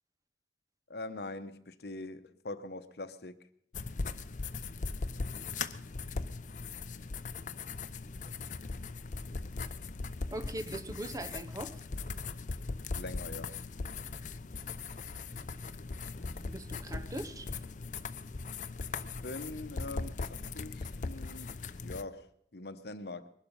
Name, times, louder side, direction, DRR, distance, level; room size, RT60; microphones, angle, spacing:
voice 1, 0.9-3.4 12.9-13.6 19.0-23.3, left 2 dB, 65° left, 0.9 m, -43 dB
sound 1, 3.7-22.0, left 4 dB, 45° left, 0.6 m, -39 dB
voice 2, 10.3-11.8 16.4-17.5, right 1 dB, 20° right, 0.7 m, -40 dB
21.0 x 11.5 x 5.4 m
head